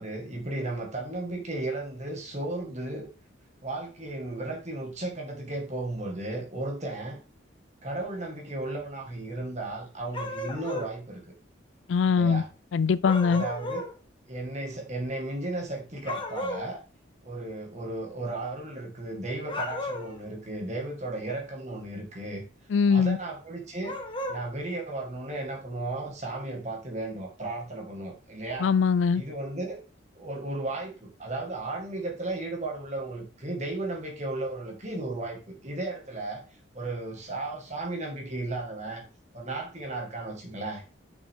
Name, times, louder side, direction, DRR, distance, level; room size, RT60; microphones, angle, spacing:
voice 1, 0.0-3.1 3.6-7.2 7.8-11.2 12.1-12.4 13.3-13.9 14.3-16.8 17.2-22.4 22.9-24.0 24.3-28.7 29.2-29.8 30.2-36.4 36.7-39.0 39.3-40.8, right 2 dB, 35° right, 2.0 m, -35 dB
sound 1, 10.1-10.9 13.0-13.9 16.1-16.7 19.4-20.2 23.8-24.4, left 1 dB, 25° left, 1.1 m, -34 dB
voice 2, 11.9-12.4 12.7-13.4 22.7-23.2 28.6-29.2, left 5 dB, 75° left, 0.4 m, -22 dB
6.2 x 6.0 x 3.8 m
head